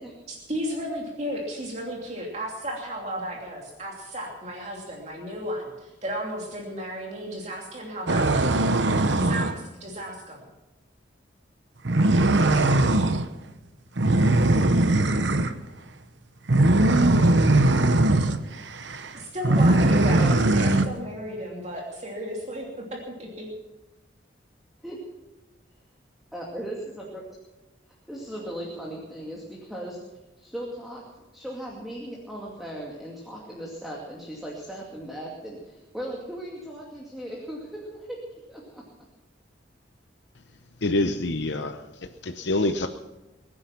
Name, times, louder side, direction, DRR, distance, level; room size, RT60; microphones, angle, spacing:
voice 1, 0.3-10.5 19.1-23.5, equal, 35° right, -1 dB, 3.0 m, -34 dB
sound 1, 8.1-9.6 11.8-13.3 14.0-15.6 16.5-18.4 18.8-19.1 19.4-20.9, right 2 dB, 70° right, 1.0 m, -20 dB
voice 2, 26.3-27.2 28.1-30.0 30.4-31.0 31.3-38.2 38.5-38.8, right 1 dB, ahead, -4 dB, 2.4 m, -38 dB
voice 3, 40.8-41.8 42.2-42.9, left 2 dB, 65° left, 7 dB, 0.8 m, -25 dB
22.5 x 9.8 x 6.0 m, 1.1 s
head